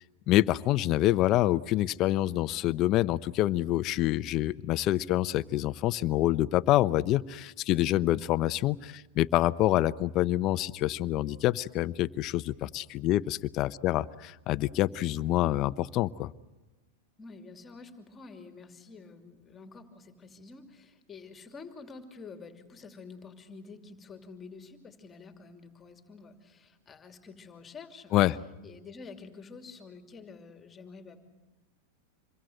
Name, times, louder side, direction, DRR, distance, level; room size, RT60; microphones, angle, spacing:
voice 1, 0.3-16.3 28.1-28.4, left 14 dB, 40° left, 15 dB, 0.8 m, -26 dB
voice 2, 17.2-28.2 28.6-31.2, left 4 dB, 20° left, 6 dB, 2.7 m, -48 dB
27.5 x 22.5 x 8.0 m, 1.1 s
hypercardioid pair, 120°, 0 cm